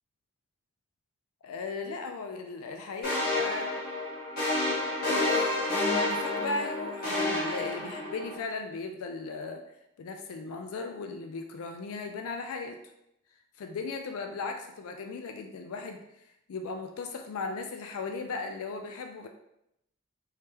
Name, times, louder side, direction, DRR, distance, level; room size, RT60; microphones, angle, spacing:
voice 1, 1.4-3.7 5.0-9.6 10.0-12.8 13.6-19.3, left 4 dB, 85° left, 5 dB, 0.4 m, -37 dB
sound 1, 3.0-8.4, left 2 dB, 45° left, 1.5 m, -29 dB
3.5 x 3.2 x 2.8 m, 0.82 s
head